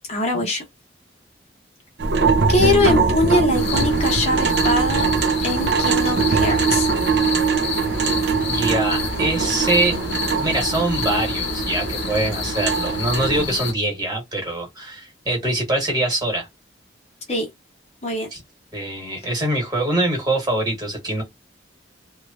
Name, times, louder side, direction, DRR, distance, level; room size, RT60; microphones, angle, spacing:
voice 1, 0.1-0.6 2.5-5.1 5.4-6.9 17.3-17.5 18.0-18.3, left 2 dB, 35° left, 0.8 m, -22 dB
sound 1, 2.0-13.5, right 5 dB, 60° right, 0.5 m, -22 dB
sound 2, 3.5-13.7, left 6 dB, 80° left, 0.6 m, -29 dB
voice 2, 8.5-10.0 10.2-16.5 18.3-18.4 18.7-21.2, right 1 dB, 20° right, 1.3 m, -23 dB
3.0 x 2.2 x 2.4 m
head